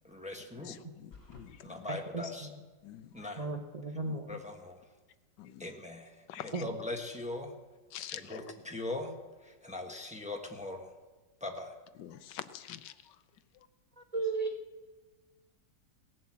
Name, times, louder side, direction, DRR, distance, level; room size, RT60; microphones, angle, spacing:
voice 1, 0.0-0.8 1.6-2.5 3.1-3.5 4.3-4.8 5.6-7.6 8.1-10.9 11.4-11.7, left 2 dB, 5° right, 2 dB, 1.0 m, -41 dB
voice 2, 0.6-1.9 2.8-3.3 4.1-4.2 5.4-5.7 6.3-6.6 7.9-8.4 12.0-13.2 13.5-13.7, left 11 dB, 75° left, 12 dB, 1.3 m, -46 dB
sound 1, 1.1-1.5, left 3 dB, 30° left, 3.0 m, -52 dB
voice 3, 1.9-2.3 3.4-4.4 6.5-6.7 14.0-14.6, right 3 dB, 40° right, 4 dB, 0.5 m, -35 dB
17.5 x 7.6 x 7.4 m, 1.3 s
omnidirectional pair, 2.0 m